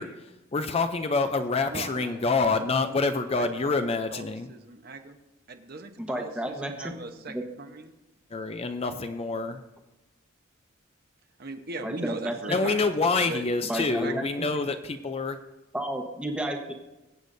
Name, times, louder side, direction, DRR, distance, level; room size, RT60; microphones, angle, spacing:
voice 1, 0.0-4.5 8.3-9.6 12.5-15.4, left 3 dB, 30° left, 8 dB, 0.5 m, -27 dB
voice 2, 1.7-2.6 3.4-3.7 4.1-5.2 5.5-7.9 11.4-12.8 13.3-13.4 14.0-14.2, right 3 dB, 50° right, 6 dB, 0.9 m, -39 dB
voice 3, 6.0-6.9 7.3-7.4 11.8-12.3 13.7-14.5 15.7-16.7, right 1 dB, 5° right, 3 dB, 1.1 m, -32 dB
23.0 x 8.1 x 2.7 m, 1.0 s
head